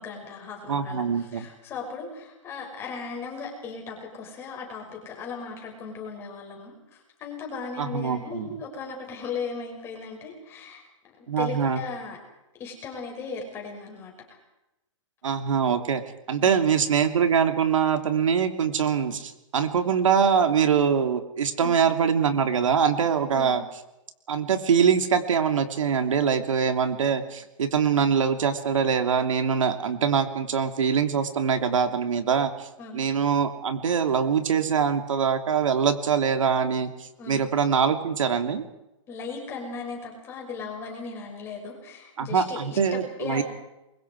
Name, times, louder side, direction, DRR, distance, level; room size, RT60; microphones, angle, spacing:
voice 1, 0.0-10.8 11.4-12.2 12.6-14.1 16.4-16.6 21.6-21.8 23.3-23.6 32.8-33.0 37.2-37.4 39.1-43.4, left 5 dB, 15° left, 0 dB, 6.4 m, -37 dB
voice 2, 0.7-1.5 7.8-8.5 11.3-11.8 15.2-16.0 16.3-23.6 24.3-32.7 32.9-38.6 42.2-43.4, right 7 dB, 80° right, 7 dB, 3.0 m, -23 dB
28.0 x 23.5 x 4.8 m, 0.93 s
hypercardioid pair, 170°, 16 cm